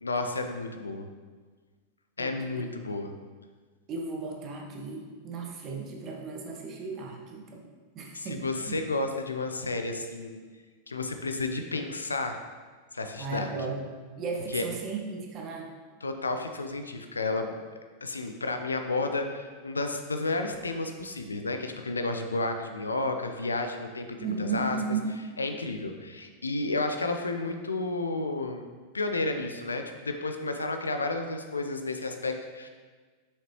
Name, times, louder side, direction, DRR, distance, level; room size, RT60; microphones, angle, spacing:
voice 1, 0.0-1.1 2.2-3.1 8.1-10.4 10.9-12.4 12.9-13.5 14.5-14.7 16.0-17.5 18.0-24.8 25.4-28.6 28.9-32.7, left 2 dB, 75° left, 6 dB, 0.5 m, -31 dB
voice 2, 2.2-2.6 3.9-7.7 7.9-8.8 13.2-13.9 14.2-15.7 24.2-25.1, right 4 dB, 35° right, 0 dB, 1.1 m, -35 dB
6.5 x 5.8 x 3.0 m, 1.5 s
figure-of-eight pair, 90°, 0 cm